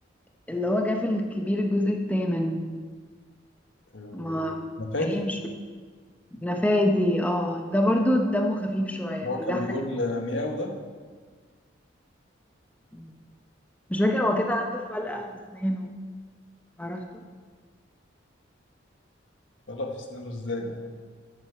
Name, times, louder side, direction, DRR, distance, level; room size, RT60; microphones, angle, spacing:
voice 1, 0.5-2.7 4.1-4.6 5.0-5.3 6.4-9.6 12.9-13.1 13.9-15.9 16.8-17.0, left 1 dB, 10° left, 2 dB, 0.7 m, -26 dB
voice 2, 3.9-4.4 4.8-5.2 9.2-10.7 19.7-20.8, left 2 dB, 80° left, 2 dB, 1.3 m, -31 dB
9.0 x 7.4 x 5.8 m, 1.6 s
head